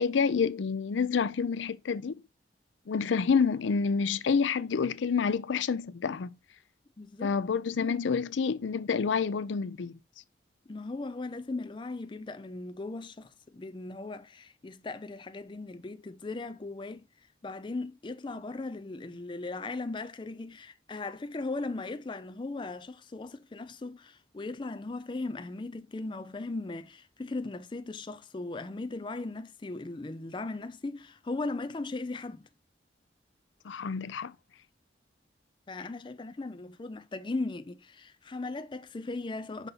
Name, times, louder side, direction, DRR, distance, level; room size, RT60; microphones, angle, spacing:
voice 1, 0.0-2.1 2.9-6.4 7.2-10.0 33.6-34.3, left 5 dB, 85° left, 0.5 m, -28 dB
voice 2, 7.0-7.4 10.7-17.1 17.4-32.5 35.7-39.7, left 3 dB, 25° left, 0.4 m, -38 dB
5.7 x 4.1 x 5.4 m
head